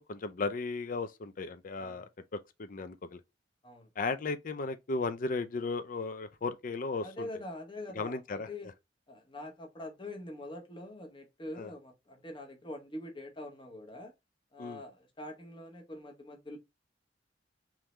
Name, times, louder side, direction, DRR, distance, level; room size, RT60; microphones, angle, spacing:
voice 1, 0.0-2.1 2.3-3.2 4.0-7.3 8.0-8.5 11.6-11.7 14.6-14.8, left 3 dB, 50° left, 0.5 m, -35 dB
voice 2, 1.8-2.1 3.6-3.9 7.0-8.7 9.1-14.1 14.5-16.6, left 1 dB, 25° left, 1.0 m, -44 dB
3.7 x 3.0 x 3.2 m
head